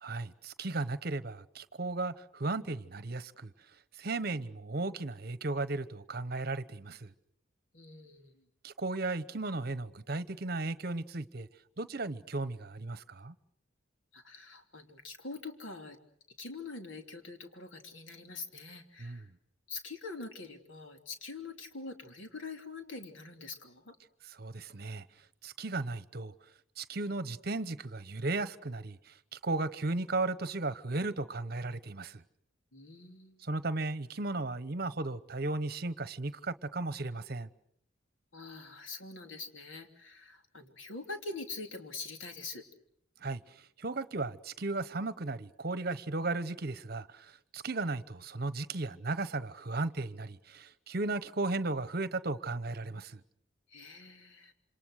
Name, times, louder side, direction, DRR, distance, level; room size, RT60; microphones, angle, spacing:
voice 1, 0.0-3.5 4.0-7.1 8.6-11.5 11.8-13.3 19.0-19.2 24.4-25.0 25.4-26.3 26.8-32.2 33.4-37.5 43.2-43.4 43.8-53.2, right 2 dB, 50° right, 1.0 m, -35 dB
voice 2, 7.7-8.4 14.1-16.0 16.4-19.3 19.7-24.0 32.7-33.5 38.3-42.6 53.7-54.5, left 3 dB, 75° left, 3.1 m, -44 dB
27.5 x 26.5 x 6.5 m
head